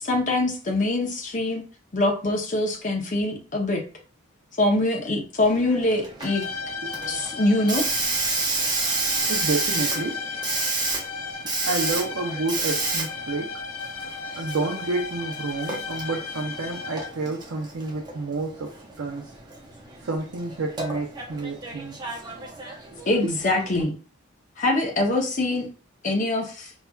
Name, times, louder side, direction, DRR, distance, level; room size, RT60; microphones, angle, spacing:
voice 1, 0.0-1.6 1.9-3.8 4.6-6.4 7.1-7.8 23.1-23.9 24.6-25.7 26.0-26.7, left 2 dB, 35° left, 0.7 m, -24 dB
Hiss, 5.4-23.8, right 3 dB, 20° right, 0.5 m, -31 dB
sound 1, 6.2-17.3, left 5 dB, 85° left, 0.4 m, -35 dB
voice 2, 9.3-10.2 11.6-13.6 14.0-19.3 20.0-22.0, right 3 dB, 70° right, 0.5 m, -30 dB
4.3 x 2.3 x 2.3 m
head